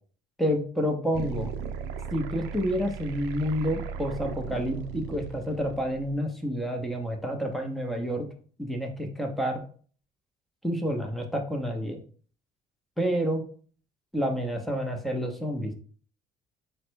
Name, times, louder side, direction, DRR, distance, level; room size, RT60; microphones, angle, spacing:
voice 1, 0.4-1.5 2.1-8.2 8.6-9.6 10.6-12.0 13.0-13.4 14.1-15.7, equal, ahead, 2 dB, 0.8 m, -29 dB
sound 1, 1.1-6.2, right 7 dB, 90° right, 0.4 m, -37 dB
3.8 x 2.2 x 4.5 m, 0.44 s
cardioid pair, 110°, 17 cm